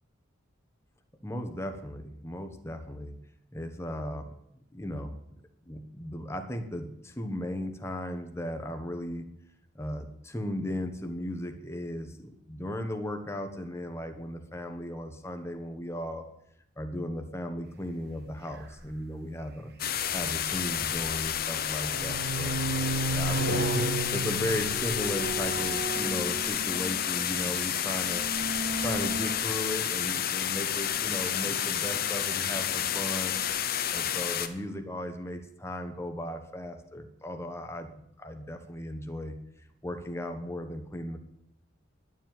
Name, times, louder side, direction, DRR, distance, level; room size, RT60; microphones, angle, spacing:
voice 1, 1.2-3.1 3.5-4.3 4.7-5.2 5.7-9.3 9.7-16.3 16.8-19.7 20.1-22.6 23.1-28.3 28.8-33.4 33.9-37.9 38.2-39.3 39.8-41.2, left 1 dB, 15° left, 6 dB, 1.2 m, -36 dB
sound 1, 18.8-18.9 20.6-21.3 21.7-27.2 28.0-29.3, right 2 dB, 55° right, 1.4 m, -33 dB
sound 2, 19.8-34.5, left 9 dB, 50° left, 0.9 m, -30 dB
11.5 x 7.4 x 9.4 m, 0.77 s
head